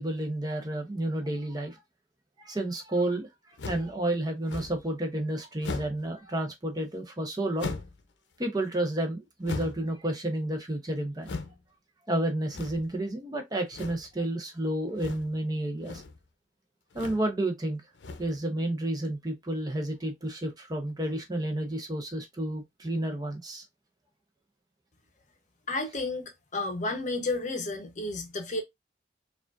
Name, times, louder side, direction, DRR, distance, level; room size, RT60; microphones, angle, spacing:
voice 1, 0.0-1.8 2.4-3.3 3.7-7.7 8.4-11.3 12.1-16.0 16.9-17.8 18.2-23.6, right 1 dB, 20° right, 0.7 m, -31 dB
sound 1, 3.6-3.9 4.5-4.9 5.6-6.1 7.6-8.0 9.4-9.9 11.2-11.6 12.5-12.9 13.7-14.1 14.9-15.4 15.7-16.2 16.9-17.3 17.9-18.4, left 3 dB, 85° left, 0.6 m, -38 dB
voice 2, 25.7-28.6, left 2 dB, 40° left, 0.8 m, -32 dB
4.8 x 2.4 x 2.4 m
head